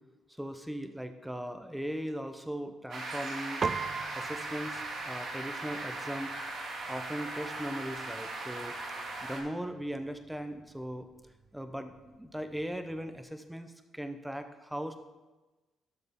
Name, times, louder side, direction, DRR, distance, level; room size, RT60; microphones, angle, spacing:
voice 1, 0.4-3.8 4.1-6.3 6.9-8.8 9.2-11.1 11.5-15.0, equal, 5° right, 8 dB, 0.8 m, -39 dB
sound 1, 2.9-9.4, right 2 dB, 65° right, 2.4 m, -39 dB
Piano, 3.6-13.2, right 5 dB, 40° right, 0.4 m, -43 dB
12.0 x 6.7 x 3.7 m, 1.2 s
cardioid pair, 90°, 0 cm